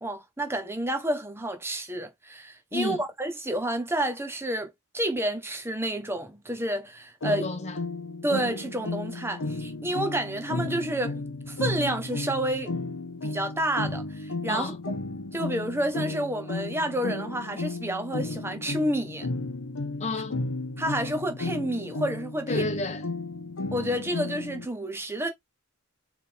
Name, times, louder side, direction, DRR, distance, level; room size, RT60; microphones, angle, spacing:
voice 1, 0.0-7.5 8.2-12.7 13.2-14.7 15.3-19.3 20.8-22.7 23.7-25.3, right 1 dB, 10° right, 1.1 m, -30 dB
voice 2, 2.7-3.0 7.2-7.8 14.5-14.8 20.0-20.4 22.5-23.0, left 3 dB, 35° left, 0.6 m, -31 dB
sound 1, 7.2-24.7, left 2 dB, 80° left, 0.9 m, -34 dB
4.2 x 3.5 x 3.5 m
head